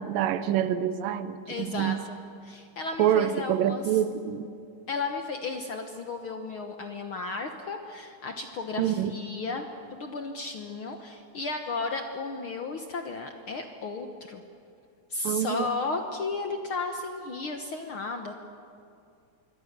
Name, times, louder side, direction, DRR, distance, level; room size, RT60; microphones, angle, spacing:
voice 1, 0.0-2.0 3.0-4.5 8.8-9.1 15.2-15.7, right 10 dB, 85° right, 13 dB, 2.6 m, -26 dB
voice 2, 1.5-2.2 2.4-3.8 4.9-14.4 15.1-18.3, left 3 dB, 60° left, 5 dB, 1.4 m, -34 dB
26.0 x 22.5 x 6.8 m, 2.5 s
omnidirectional pair, 3.8 m